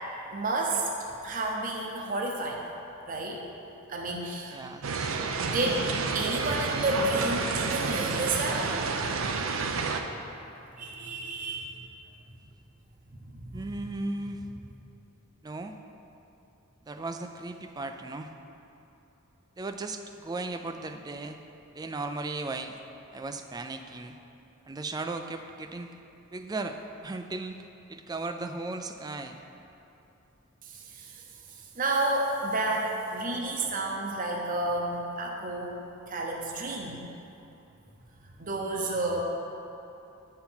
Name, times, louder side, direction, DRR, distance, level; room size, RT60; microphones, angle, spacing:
voice 1, 0.1-0.9 1.2-2.6 3.1-3.4 3.9-4.6 5.4-5.9 6.1-8.7 10.8-11.8 13.1-13.6 30.6-35.8 36.1-37.1 38.4-39.2, right 2 dB, 40° right, 0 dB, 0.8 m, -31 dB
voice 2, 4.5-5.2 13.5-14.4 15.4-15.8 16.8-18.3 19.6-21.4 21.8-22.8 23.1-24.2 24.7-25.9 26.3-29.4, right 2 dB, 20° right, 7 dB, 0.3 m, -36 dB
sound 1, 4.8-10.0, right 4 dB, 80° right, 0.5 m, -30 dB
9.0 x 4.4 x 5.6 m, 2.9 s
head